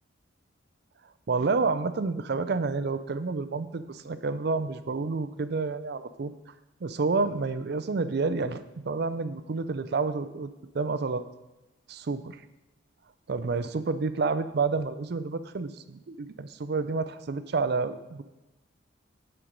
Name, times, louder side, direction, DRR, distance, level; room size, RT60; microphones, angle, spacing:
voice 1, 1.3-6.3 6.8-11.3 11.9-12.4 13.3-18.2, right 4 dB, 55° right, 12 dB, 0.4 m, -29 dB
10.0 x 4.5 x 5.1 m, 1.0 s
head